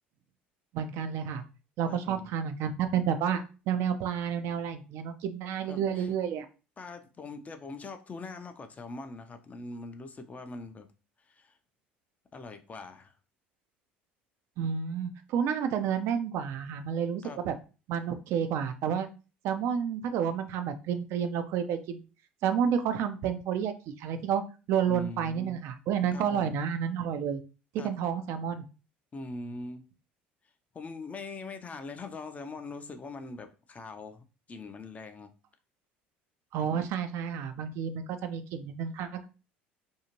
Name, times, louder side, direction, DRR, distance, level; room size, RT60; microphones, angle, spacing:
voice 1, 0.7-1.4 1.8-6.5 14.6-17.5 17.9-19.1 19.4-22.0 22.4-24.4 24.7-27.4 27.7-28.6 36.5-39.3, right 8 dB, 55° right, 8 dB, 0.4 m, -30 dB
voice 2, 1.9-2.3 5.7-6.1 6.8-10.9 11.2-11.6 12.3-13.1 17.2-17.4 24.9-25.6 26.1-26.6 27.8-27.9 29.1-29.9 30.7-35.3, left 3 dB, 25° left, 7 dB, 0.5 m, -42 dB
2.6 x 2.4 x 2.9 m, 0.33 s
figure-of-eight pair, 65°, 6 cm